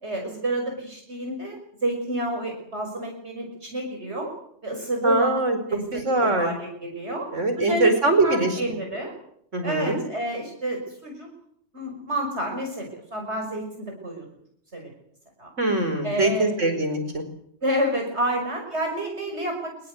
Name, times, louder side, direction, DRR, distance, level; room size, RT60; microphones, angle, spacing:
voice 1, 0.0-4.3 4.6-5.3 5.7-7.3 7.6-7.9 8.2-9.1 9.6-11.3 11.7-14.3 14.7-14.9 15.4-15.5 16.0-16.7 17.6-19.7, right 1 dB, 60° right, 2 dB, 6.0 m, -29 dB
voice 2, 5.0-5.6 5.9-6.5 7.3-8.6 9.5-10.0 15.6-17.2, right 2 dB, 80° right, 8 dB, 5.3 m, -22 dB
25.5 x 22.0 x 8.1 m, 0.69 s
omnidirectional pair, 1.3 m